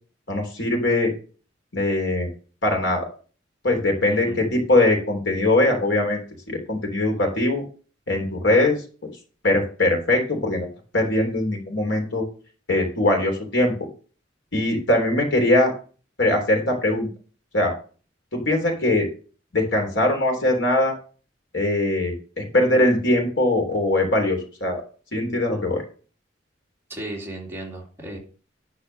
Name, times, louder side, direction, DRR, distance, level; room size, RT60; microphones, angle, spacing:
voice 1, 0.3-1.1 1.7-2.3 2.6-3.0 3.6-7.6 8.1-8.8 9.4-10.7 10.9-12.3 12.7-13.7 14.5-15.7 16.2-17.1 17.5-17.7 18.3-19.1 19.5-21.0 21.5-24.8 25.1-25.8, left 1 dB, 85° left, 3 dB, 3.4 m, -21 dB
voice 2, 4.1-4.4 26.9-28.2, right 1 dB, 15° right, -3 dB, 2.8 m, -35 dB
11.0 x 4.3 x 6.6 m, 0.39 s
head